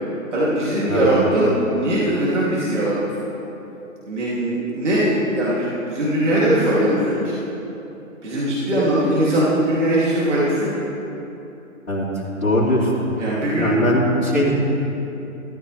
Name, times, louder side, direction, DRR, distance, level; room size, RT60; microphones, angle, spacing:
voice 1, 0.3-3.0 4.1-7.3 8.2-10.7 13.2-13.8, right 1 dB, 55° right, -8 dB, 2.9 m, -20 dB
voice 2, 12.4-12.9 13.6-14.5, left 1 dB, 75° left, -9 dB, 3.0 m, -20 dB
14.0 x 13.5 x 3.4 m, 2.9 s
figure-of-eight pair, 140°, 42 cm